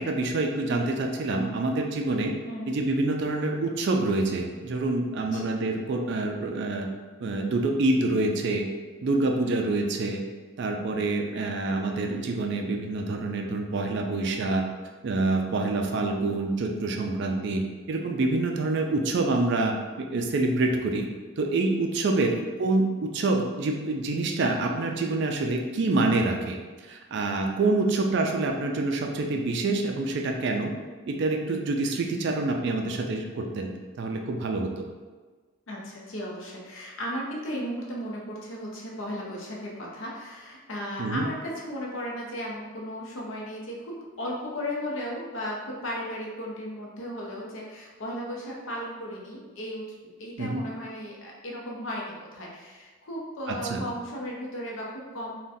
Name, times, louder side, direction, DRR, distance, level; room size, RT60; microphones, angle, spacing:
voice 1, 0.0-2.3 2.7-6.9 7.2-8.7 9.0-10.2 10.6-14.7 15.0-21.1 21.4-26.6 26.9-30.7 31.1-33.7 34.0-34.8 41.0-41.3 50.4-50.6 53.5-53.8, right 2 dB, 50° right, 3 dB, 0.3 m, -26 dB
voice 2, 16.0-16.3 22.2-22.4 35.7-49.8 50.2-55.4, equal, 65° left, -3 dB, 0.6 m, -35 dB
3.8 x 2.2 x 2.6 m, 1.4 s
head